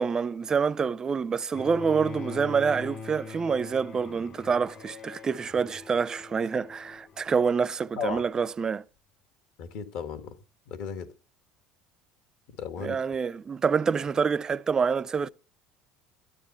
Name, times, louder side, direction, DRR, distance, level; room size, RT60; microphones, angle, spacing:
voice 1, 0.0-8.8 12.8-15.3, right 5 dB, 25° right, 0.4 m, -27 dB
Bowed string instrument, 1.5-7.6, left 4 dB, 50° left, 2.1 m, -42 dB
voice 2, 9.6-10.4 10.7-11.1 12.5-13.0, left 7 dB, 65° left, 1.6 m, -35 dB
12.5 x 9.9 x 4.3 m
supercardioid pair, 110°, 3 cm